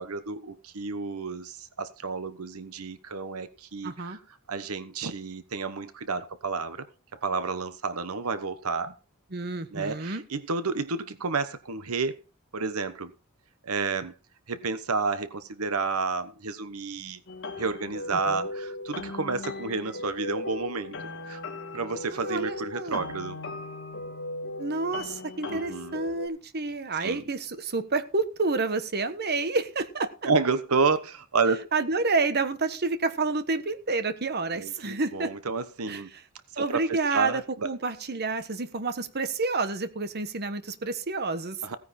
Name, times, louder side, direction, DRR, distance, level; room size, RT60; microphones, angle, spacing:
voice 1, 0.0-4.2 4.5-8.9 9.7-12.2 12.5-13.1 13.6-14.1 14.5-17.2 17.6-21.0 21.3-21.4 21.7-23.4 25.5-26.0 27.0-27.2 30.2-31.6 34.5-36.1 36.6-37.7 41.6-41.8, right 4 dB, 85° right, 12 dB, 1.1 m, -30 dB
voice 2, 3.8-4.2 9.3-10.2 18.1-18.5 22.1-23.0 24.6-30.1 31.7-35.3 35.9-36.2 36.6-41.6, right 3 dB, 50° right, 10 dB, 1.3 m, -29 dB
sound 1, 17.3-26.3, left 2 dB, 60° left, 2.9 m, -37 dB
16.5 x 9.7 x 4.3 m, 0.33 s
head